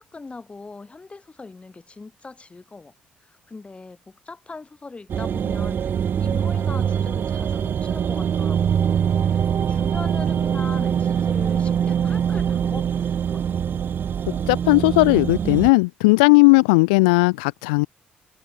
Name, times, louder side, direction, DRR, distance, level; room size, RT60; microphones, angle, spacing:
voice 1, 0.0-2.9 3.2-13.4, left 3 dB, 30° left, 2.4 m, -40 dB
sound 1, 5.1-15.7, right 8 dB, 55° right, 0.6 m, -23 dB
voice 2, 14.3-17.9, left 28 dB, 85° left, 0.4 m, -16 dB
hypercardioid pair, 50°, 4 cm